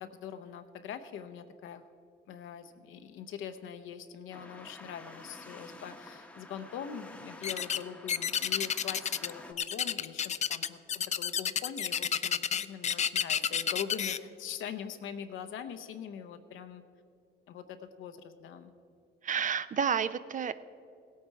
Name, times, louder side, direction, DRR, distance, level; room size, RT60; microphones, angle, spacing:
voice 1, 0.0-1.8 2.3-16.8 17.5-18.7, left 8 dB, 80° left, 9 dB, 0.8 m, -43 dB
sound 1, 4.3-9.5, left 1 dB, 5° left, 0.9 m, -50 dB
sound 2, 7.4-7.8 8.1-9.3 9.6-14.2, left 8 dB, 35° left, 0.4 m, -30 dB
voice 2, 19.2-20.5, right 7 dB, 40° right, 14 dB, 0.5 m, -30 dB
17.0 x 8.6 x 4.7 m, 2.4 s
cardioid pair, 90°, 20 cm